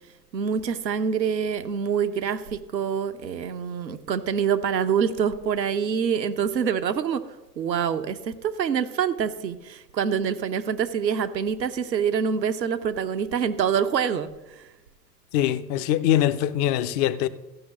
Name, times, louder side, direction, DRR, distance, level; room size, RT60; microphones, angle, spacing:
voice 1, 0.3-7.2 7.6-14.3 14.6-14.7, right 7 dB, 90° right, 1.0 m, -26 dB
voice 2, 15.3-17.3, left 11 dB, 25° left, 0.4 m, -23 dB
15.0 x 5.9 x 6.2 m
hypercardioid pair, 110°, 49 cm